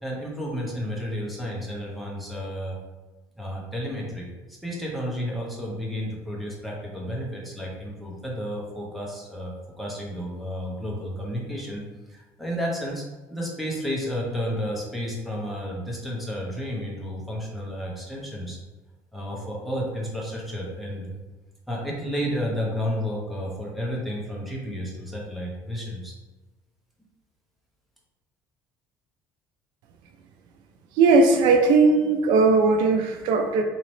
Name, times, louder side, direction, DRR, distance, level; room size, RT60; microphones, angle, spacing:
voice 1, 0.0-2.8 3.4-11.8 12.1-13.0 13.3-18.6 19.1-21.2 21.7-26.1, equal, ahead, -3 dB, 0.8 m, -31 dB
voice 2, 31.0-33.6, right 3 dB, 75° right, 5 dB, 0.5 m, -18 dB
4.0 x 2.8 x 3.2 m, 1.2 s
cardioid pair, 160°, 7 cm